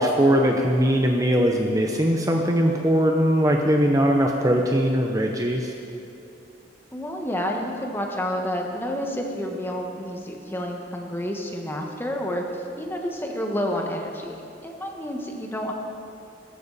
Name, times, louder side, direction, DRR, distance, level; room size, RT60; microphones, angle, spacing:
voice 1, 0.0-5.7, equal, 20° right, 1 dB, 0.8 m, -20 dB
voice 2, 6.9-15.7, equal, 10° left, 1 dB, 1.5 m, -29 dB
18.0 x 14.0 x 4.2 m, 2.6 s
head